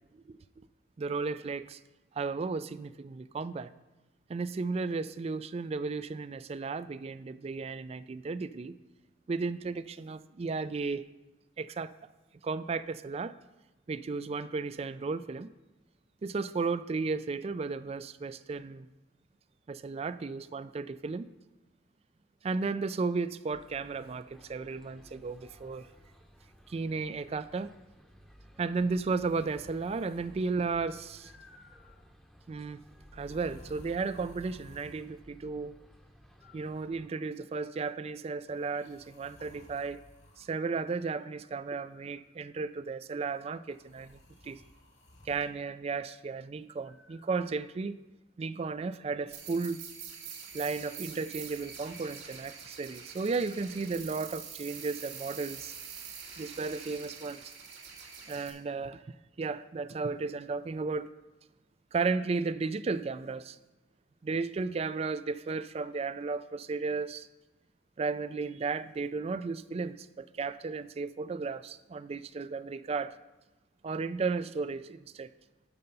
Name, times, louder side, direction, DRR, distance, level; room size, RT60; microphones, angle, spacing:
voice 1, 1.0-1.8 2.2-3.7 4.3-8.8 9.3-11.0 11.6-11.9 12.4-13.4 13.9-15.5 16.2-18.9 19.7-21.3 22.4-25.9 26.7-27.7 28.6-31.3 32.5-32.8 33.1-35.8 36.5-40.0 40.4-44.6 45.3-48.0 48.4-49.8 50.5-55.7 56.4-57.5 58.3-59.0 59.4-61.1 61.9-63.6 64.2-67.3 68.0-73.1 73.8-75.3, right 4 dB, 30° right, 15 dB, 0.3 m, -34 dB
sound 1, 23.5-37.1, equal, ahead, 0.8 m, -56 dB
sound 2, 29.2-30.5 31.1-32.1 33.1-35.1 36.4-37.3 38.5-40.5 41.7-42.5 43.7-45.5 46.8-47.3, left 1 dB, 80° left, 2.1 m, -57 dB
sound 3, 49.3-58.5, right 7 dB, 75° right, 2.0 m, -45 dB
12.0 x 5.7 x 5.4 m, 1.1 s
head